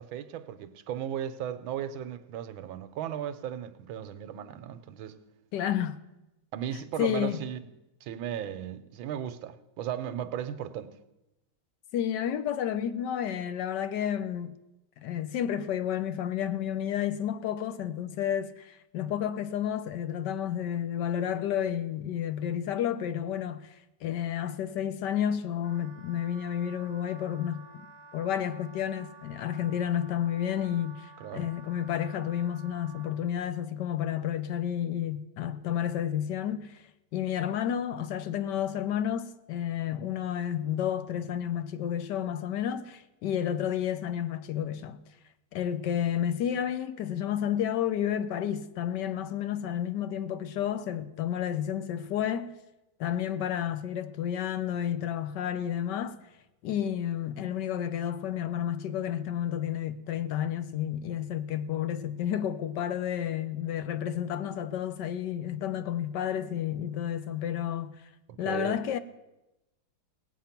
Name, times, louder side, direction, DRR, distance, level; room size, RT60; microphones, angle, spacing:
voice 1, 0.0-5.2 6.5-7.6 8.0-10.9 31.2-31.5 68.3-68.8, right 10 dB, 70° right, 1.4 m, -36 dB
voice 2, 5.5-6.0 7.0-7.4 11.9-14.6 15.0-27.9 28.1-36.8 37.1-45.0 45.5-52.5 53.0-56.2 56.6-68.0 68.4-69.0, left 10 dB, 65° left, 1.1 m, -31 dB
Wind instrument woodwind instrument, 25.6-33.2, right 3 dB, 35° right, 0.8 m, -52 dB
18.0 x 8.3 x 5.8 m
omnidirectional pair, 2.3 m